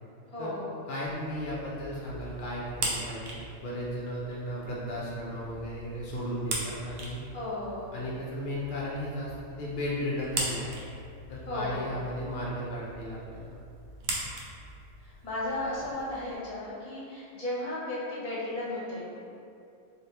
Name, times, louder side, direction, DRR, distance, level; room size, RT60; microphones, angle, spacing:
voice 1, 0.3-0.9 7.3-7.9 11.5-12.0 15.0-19.2, left 1 dB, 35° left, -9 dB, 0.8 m, -35 dB
voice 2, 0.9-7.2 7.9-10.8 11.3-13.5, equal, 80° left, -6 dB, 0.4 m, -35 dB
sound 1, 1.0-16.4, right 2 dB, 80° right, 1.0 m, -40 dB
3.2 x 2.5 x 2.7 m, 2.4 s
omnidirectional pair, 1.5 m